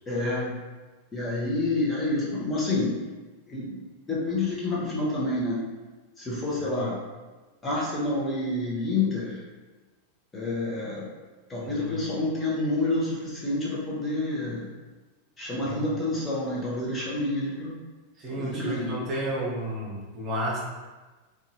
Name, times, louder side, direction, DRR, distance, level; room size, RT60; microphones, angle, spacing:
voice 1, 0.1-0.6 1.1-3.0 3.5-3.8 4.1-5.6 6.2-7.0 7.6-9.4 10.3-11.1 11.5-14.7 15.4-17.8 18.3-19.0, left 2 dB, 20° left, -6 dB, 0.8 m, -28 dB
voice 2, 11.6-12.0 15.7-15.9 18.2-20.6, right 1 dB, 35° right, -5 dB, 0.9 m, -32 dB
2.8 x 2.3 x 2.8 m, 1.3 s
hypercardioid pair, 115°, 0 cm